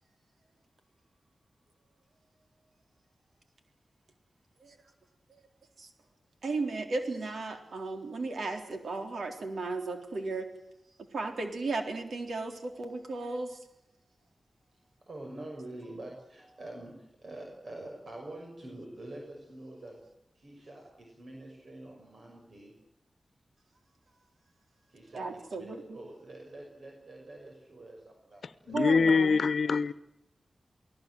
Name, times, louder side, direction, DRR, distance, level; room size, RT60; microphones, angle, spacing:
voice 1, 6.4-10.5 11.1-13.6 25.1-25.8 28.7-29.4, right 3 dB, 80° right, 5 dB, 3.8 m, -35 dB
voice 2, 15.1-20.0 20.3-22.7 24.9-29.3 29.6-29.7, right 1 dB, 60° right, 0 dB, 6.2 m, -46 dB
voice 3, 28.7-29.9, left 4 dB, 80° left, 15 dB, 1.0 m, -24 dB
29.0 x 18.5 x 7.9 m, 0.80 s
wide cardioid pair, 105°, 0 cm